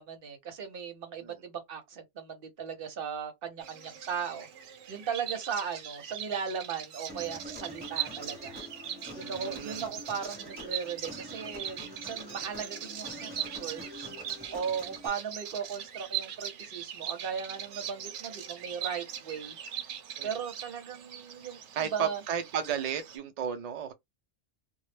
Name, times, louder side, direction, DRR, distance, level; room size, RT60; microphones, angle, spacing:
voice 1, 0.0-4.5 4.9-8.6 9.1-13.3 13.5-14.1 14.5-19.6 20.2-22.2, right 6 dB, 55° right, 0.8 m, -37 dB
Bird vocalization bird call bird song, 3.6-23.2, right 9 dB, 90° right, 0.9 m, -41 dB
Human voice, 7.1-15.1, equal, 10° right, 0.9 m, -46 dB
voice 2, 9.3-9.9 20.2-20.3 21.7-23.9, right 8 dB, 75° right, 0.3 m, -33 dB
2.2 x 2.0 x 3.1 m
omnidirectional pair, 1.2 m